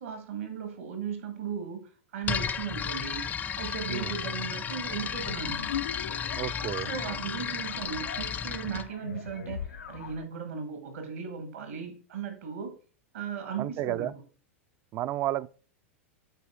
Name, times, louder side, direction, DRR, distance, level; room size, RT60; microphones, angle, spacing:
voice 1, 0.0-3.2 3.6-5.7 6.9-12.7 13.1-14.1, right 7 dB, 75° right, 1.8 m, -37 dB
sound 1, 2.2-8.9, left 7 dB, 25° left, 0.5 m, -33 dB
sound 2, 5.1-10.3, left 7 dB, 85° left, 0.4 m, -40 dB
voice 2, 6.3-6.9 13.6-14.1 14.9-15.5, right 14 dB, 40° right, 0.3 m, -31 dB
8.1 x 4.2 x 3.7 m
hypercardioid pair, 95°, 7 cm